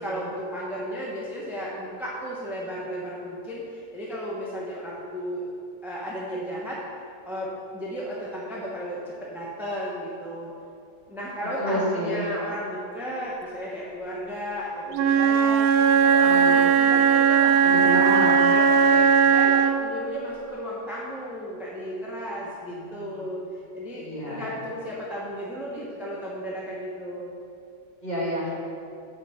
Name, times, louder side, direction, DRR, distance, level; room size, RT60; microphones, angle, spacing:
voice 1, 0.0-5.4 5.8-6.8 7.3-10.5 11.1-15.7 16.0-18.1 18.4-27.3, equal, ahead, -6 dB, 1.0 m, -34 dB
voice 2, 11.6-12.2 16.2-16.6 17.6-18.5 19.1-19.2 22.7-23.2 24.0-24.5 28.0-28.5, equal, 30° left, -6 dB, 1.9 m, -29 dB
Wind instrument woodwind instrument, 14.9-19.9, right 7 dB, 85° right, 1.1 m, -18 dB
5.9 x 5.6 x 6.9 m, 2.5 s
omnidirectional pair, 1.5 m